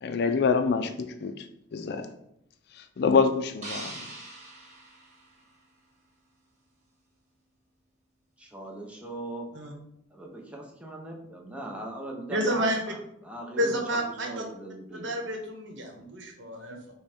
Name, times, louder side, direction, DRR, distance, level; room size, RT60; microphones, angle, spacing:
voice 1, 0.0-1.5 1.7-2.1 2.8-4.1, left 5 dB, 55° left, 0.4 m, -26 dB
sound 1, 3.6-5.9, right 2 dB, 35° right, 1.2 m, -43 dB
voice 2, 8.4-9.5 10.1-15.2, right 2 dB, 5° right, 0.6 m, -40 dB
voice 3, 12.3-12.8 13.6-14.4 14.9-16.9, equal, 65° right, 0.9 m, -30 dB
5.3 x 2.2 x 4.3 m
head